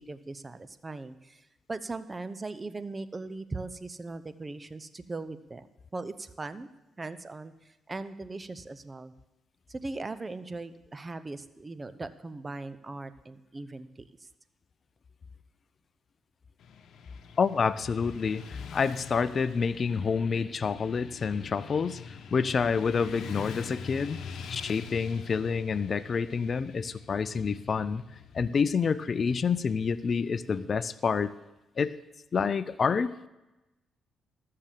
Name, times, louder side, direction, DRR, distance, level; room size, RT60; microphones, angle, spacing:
voice 1, 0.0-5.7 5.9-6.7 7.0-9.1 9.7-14.3, right 3 dB, 30° right, 13 dB, 0.8 m, -39 dB
Motorcycle / Traffic noise roadway noise, 16.6-30.7, left 6 dB, 70° left, 1.0 m, -45 dB
voice 2, 17.4-24.2 24.5-28.0 28.3-31.3 31.8-32.0 32.3-33.2, left 5 dB, 50° left, 16 dB, 0.5 m, -28 dB
13.5 x 6.7 x 7.5 m, 0.99 s
supercardioid pair, 60°, 0 cm